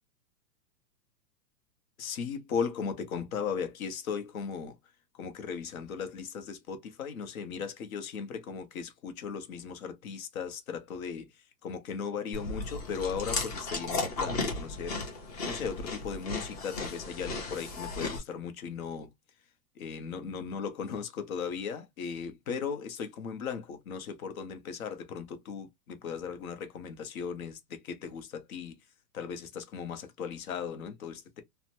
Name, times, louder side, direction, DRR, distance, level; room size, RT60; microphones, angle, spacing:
voice 1, 2.0-4.8 5.1-19.1 19.7-28.8 29.1-31.4, left 6 dB, 60° left, 0.9 m, -37 dB
Chewing mastication, 12.3-18.2, left 3 dB, 25° left, 0.6 m, -35 dB
2.8 x 2.1 x 2.8 m
hypercardioid pair, 160°, 48 cm